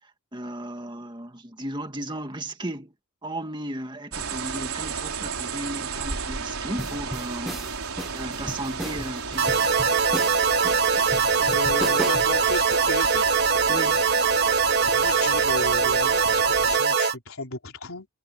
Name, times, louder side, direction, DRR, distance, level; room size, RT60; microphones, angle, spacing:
voice 1, 0.3-2.9 3.2-9.7 11.6-11.7 13.7-14.1, right 1 dB, 20° right, 2.1 m, -35 dB
sound 1, 4.1-16.8, right 5 dB, 90° right, 4.1 m, -34 dB
sound 2, 6.8-12.4, equal, ahead, 1.3 m, -35 dB
sound 3, 9.4-17.2, right 5 dB, 50° right, 1.3 m, -22 dB
voice 2, 11.4-13.3 14.8-18.1, left 2 dB, 75° left, 3.6 m, -34 dB
head